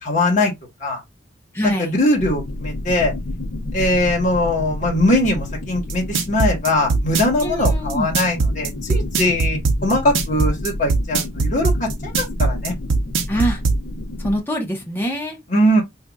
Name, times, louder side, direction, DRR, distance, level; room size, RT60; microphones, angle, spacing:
voice 1, 0.0-0.5 0.8-1.0 1.6-3.1 3.7-12.7 15.5-15.8, left 1 dB, 40° left, 1.3 m, -20 dB
voice 2, 1.5-2.0 7.4-8.1 13.3-13.6 14.2-15.4, equal, 10° left, 1.0 m, -24 dB
sound 1, 2.2-14.4, left 1 dB, 90° left, 0.7 m, -31 dB
sound 2, 5.9-13.8, right 3 dB, 85° right, 0.7 m, -19 dB
4.0 x 2.7 x 2.3 m
head